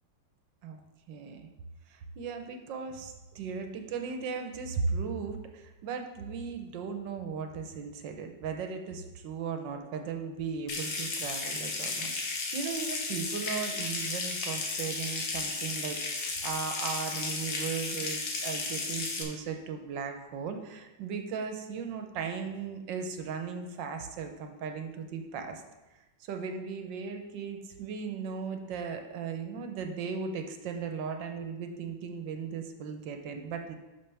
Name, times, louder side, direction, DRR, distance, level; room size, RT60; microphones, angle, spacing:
voice 1, 1.1-1.5 1.9-25.6 26.2-33.7, right 5 dB, 75° right, 5 dB, 1.5 m, -37 dB
Water tap faucet / Sink (filling or washing) / Trickle dribble, 10.7-19.2, left 3 dB, 80° left, 2.0 m, -34 dB
11.0 x 6.1 x 3.4 m, 1.1 s
omnidirectional pair, 2.1 m